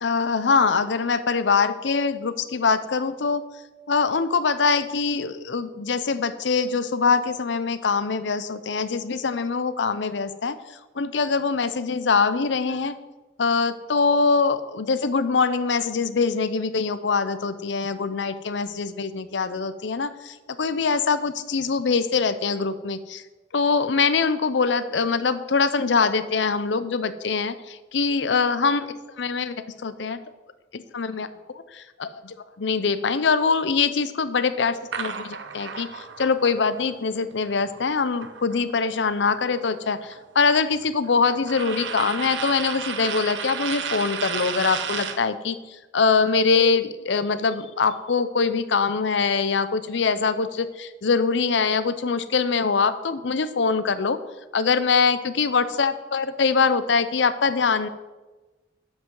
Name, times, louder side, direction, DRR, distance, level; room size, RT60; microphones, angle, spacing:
voice 1, 0.0-3.4 3.9-10.6 11.0-12.9 13.4-23.2 23.5-28.9 29.2-30.2 30.7-31.3 31.7-45.6 45.9-54.2 54.5-57.9, left 5 dB, 80° left, 13 dB, 0.6 m, -23 dB
sound 1, 34.9-39.0 39.3-45.3, right 7 dB, 85° right, 0.7 m, -33 dB
12.0 x 7.9 x 3.9 m, 1.2 s
head